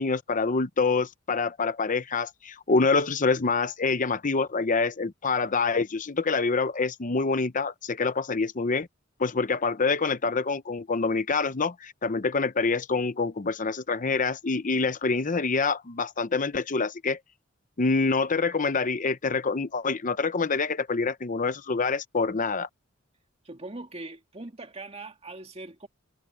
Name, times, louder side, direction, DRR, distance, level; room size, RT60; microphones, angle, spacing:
voice 1, 0.0-8.9 9.2-17.2 17.8-22.7, left 4 dB, 40° left, 0.8 m, -26 dB
voice 2, 23.4-25.9, right 2 dB, 30° right, 2.2 m, -41 dB
head